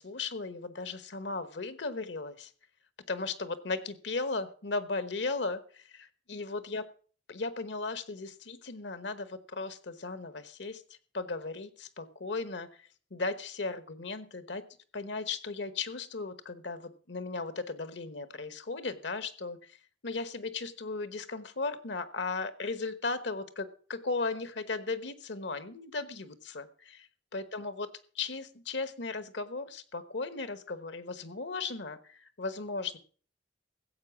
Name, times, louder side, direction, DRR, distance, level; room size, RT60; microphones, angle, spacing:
voice 1, 0.0-2.5 3.1-6.9 7.3-10.8 11.1-14.6 14.9-19.8 20.0-27.9 28.1-33.0, left 3 dB, 70° left, 13 dB, 1.1 m, -36 dB
15.0 x 7.9 x 5.9 m, 0.43 s
head